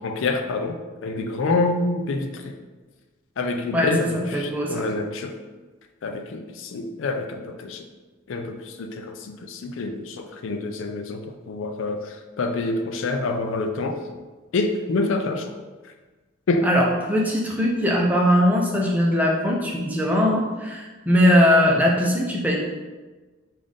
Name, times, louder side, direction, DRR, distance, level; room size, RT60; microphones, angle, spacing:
voice 1, 0.0-2.5 3.4-5.3 6.0-7.8 8.3-11.2 11.5-14.0 14.5-15.5 16.5-16.7, left 3 dB, 65° left, 6 dB, 0.4 m, -27 dB
voice 2, 4.3-4.9 16.6-22.6, equal, 10° right, -2 dB, 0.6 m, -20 dB
5.5 x 2.5 x 3.5 m, 1.3 s
head